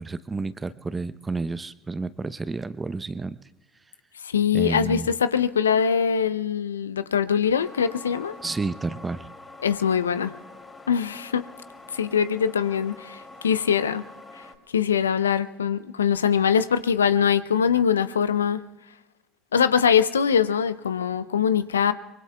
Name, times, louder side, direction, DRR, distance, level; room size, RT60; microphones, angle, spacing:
voice 1, 0.0-3.4 4.5-5.1 8.4-9.3, right 3 dB, 20° right, 0.7 m, -30 dB
voice 2, 4.2-8.3 9.6-10.3 10.9-11.4 11.9-14.0 14.7-18.6 19.5-21.9, left 7 dB, 85° left, 0.5 m, -22 dB
sound 1, 7.6-14.6, left 2 dB, 25° left, 3.0 m, -45 dB
25.0 x 24.0 x 2.3 m
hypercardioid pair, 65°, 0 cm